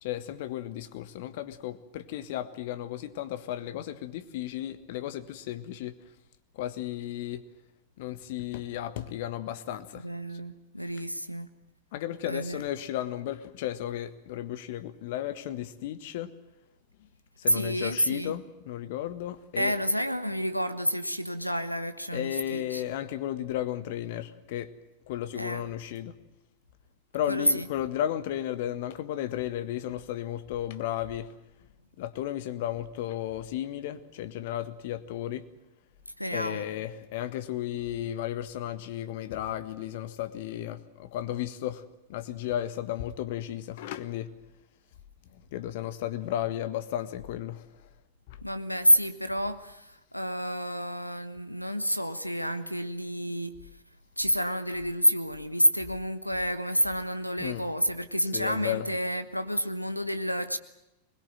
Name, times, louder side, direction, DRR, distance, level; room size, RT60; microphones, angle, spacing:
voice 1, 0.0-5.9 6.5-7.4 8.0-10.0 11.9-16.3 17.4-19.7 22.1-24.7 25.1-26.1 27.1-31.3 32.0-35.4 36.3-41.8 42.1-44.3 45.5-47.6 57.4-57.6 58.3-58.8, left 12 dB, 50° left, 12 dB, 1.6 m, -34 dB
voice 2, 10.0-11.5 12.3-12.6 17.5-18.3 19.6-22.8 25.3-25.6 27.3-27.7 36.2-36.6 48.4-49.8 50.1-53.5 54.2-60.6, equal, 90° left, 12 dB, 1.1 m, -29 dB
22.5 x 21.0 x 9.2 m, 0.92 s
figure-of-eight pair, 90°, 0 cm